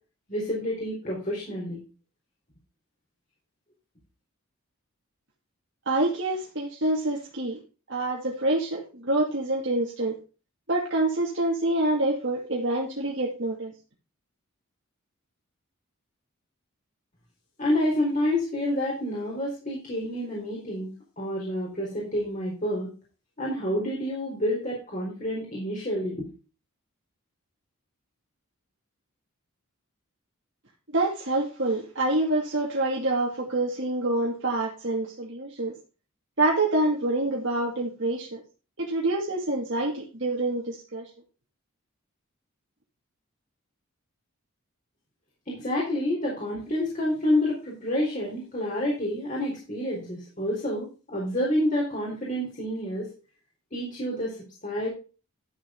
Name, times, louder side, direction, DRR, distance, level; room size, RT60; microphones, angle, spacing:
voice 1, 0.3-1.8 17.6-22.9 23.4-26.3 45.5-53.1 53.7-54.9, left 1 dB, 35° left, -4 dB, 4.3 m, -28 dB
voice 2, 5.9-7.6 7.9-10.2 10.7-13.7 30.9-35.7 36.4-38.4 38.8-41.1, right 2 dB, 55° right, -2 dB, 2.5 m, -26 dB
12.5 x 8.0 x 3.8 m, 0.34 s
head